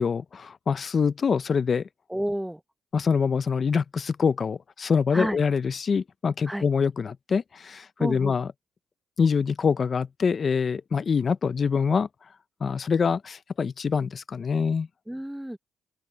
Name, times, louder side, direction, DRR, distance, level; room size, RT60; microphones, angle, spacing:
voice 1, 0.0-1.8 2.9-8.5 9.2-12.1 12.6-14.9, left 6 dB, 40° left, 0.7 m, -25 dB
voice 2, 2.1-2.6 5.1-5.4 6.5-6.6 8.0-8.4 15.1-15.6, right 1 dB, 5° right, 1.0 m, -30 dB
open air
cardioid pair, 90°, 0 cm